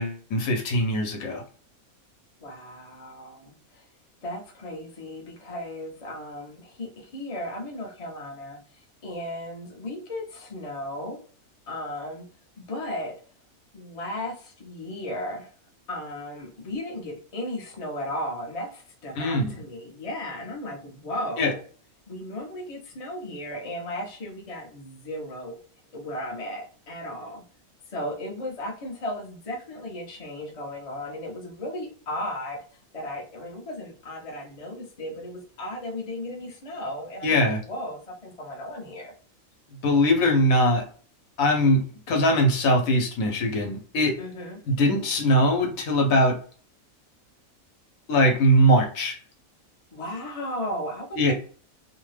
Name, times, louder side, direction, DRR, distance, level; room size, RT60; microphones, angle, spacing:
voice 1, 0.0-1.4 19.2-19.5 21.4-21.5 37.2-37.6 39.8-40.8 41.4-44.2 44.7-46.4 48.1-49.1 51.2-51.3, equal, 70° left, 1.1 m, -21 dB
voice 2, 2.4-3.9 4.2-11.2 11.7-12.2 12.6-13.2 13.7-15.5 15.9-21.6 22.1-25.6 25.9-27.4 27.9-32.6 32.9-39.1 44.2-44.6 49.9-51.3, left 1 dB, 35° left, 0.6 m, -35 dB
2.7 x 2.1 x 3.2 m
omnidirectional pair, 1.5 m